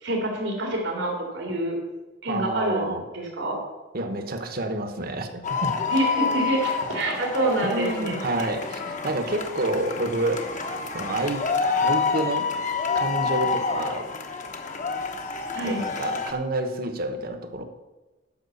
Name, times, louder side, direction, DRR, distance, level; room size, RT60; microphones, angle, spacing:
voice 1, 0.0-1.7 2.2-2.9 3.1-3.6 5.9-8.5 15.5-15.8, right 2 dB, 90° right, -1 dB, 2.8 m, -27 dB
voice 2, 2.3-3.0 3.9-5.8 7.6-10.5 10.9-11.4 11.8-12.5 12.9-14.1 15.6-17.6, right 2 dB, 55° right, 7 dB, 1.2 m, -28 dB
sound 1, 5.4-16.3, left 5 dB, 40° left, 1.1 m, -28 dB
11.0 x 6.0 x 7.1 m, 1.2 s
head